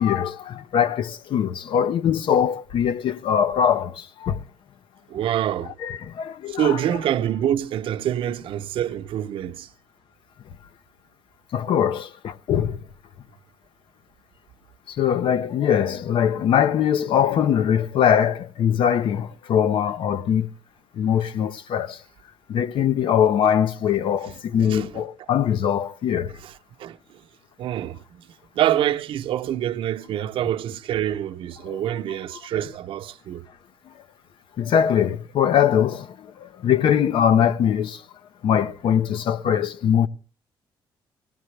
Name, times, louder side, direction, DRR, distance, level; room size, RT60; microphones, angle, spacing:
voice 1, 0.0-4.4 5.8-6.8 11.5-12.8 14.9-20.5 21.0-22.0 22.5-26.3 31.7-31.8 34.6-38.0 38.4-40.1, left 9 dB, 70° left, 0.7 m, -22 dB
voice 2, 5.1-5.8 6.5-9.7 24.2-25.0 26.4-26.5 26.8-27.3 27.6-28.3 28.5-33.5, right 11 dB, 75° right, 0.8 m, -26 dB
20.0 x 16.5 x 3.3 m
cardioid pair, 135°, 9 cm